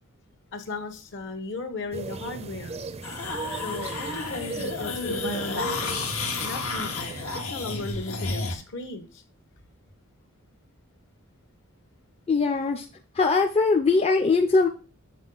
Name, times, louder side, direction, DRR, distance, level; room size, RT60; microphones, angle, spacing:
voice 1, 0.5-2.8 3.5-6.0 6.4-7.0 7.3-9.2, left 3 dB, 60° left, 8 dB, 1.3 m, -36 dB
sound 1, 1.9-7.4, right 3 dB, 30° right, 0.5 m, -37 dB
sound 2, 3.0-8.6, left 3 dB, 75° left, 1.4 m, -31 dB
voice 2, 12.3-12.9 13.2-14.7, left 4 dB, 30° left, 4 dB, 0.5 m, -21 dB
7.3 x 4.2 x 3.9 m, 0.35 s
head